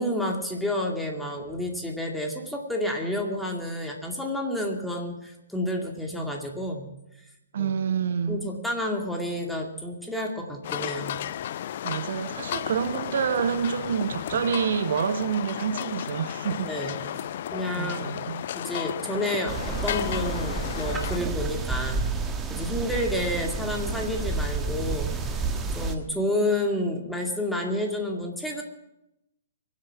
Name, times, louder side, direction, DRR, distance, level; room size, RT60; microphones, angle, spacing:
voice 1, 0.0-6.9 7.6-7.7 8.3-11.2 16.6-17.0 17.5-18.2 18.6-22.1 22.5-25.4 25.8-28.6, left 1 dB, ahead, 2.3 m, -30 dB
voice 2, 7.5-8.5 11.8-16.7 17.0-17.3 17.7-18.4, right 7 dB, 60° right, 1.0 m, -28 dB
sound 1, 10.6-21.2, left 11 dB, 50° left, 0.5 m, -33 dB
sound 2, 19.5-26.0, right 4 dB, 15° right, 1.3 m, -30 dB
23.5 x 8.4 x 6.0 m
figure-of-eight pair, 120°, 0 cm